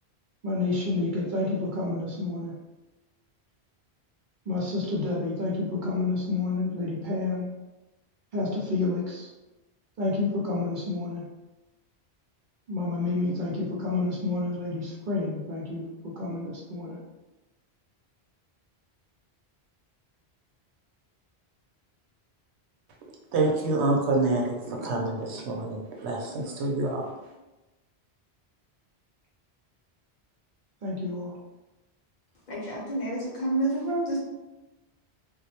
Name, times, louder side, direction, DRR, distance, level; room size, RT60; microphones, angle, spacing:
voice 1, 0.4-2.6 4.5-7.5 8.3-9.3 10.0-11.3 12.7-17.0 30.8-31.4, left 3 dB, 55° right, -3 dB, 0.6 m, -29 dB
voice 2, 23.3-27.1, right 2 dB, 90° right, 0 dB, 0.8 m, -27 dB
voice 3, 32.5-34.2, right 1 dB, 50° left, -6 dB, 0.8 m, -28 dB
2.2 x 2.0 x 2.8 m, 1.0 s
omnidirectional pair, 1.1 m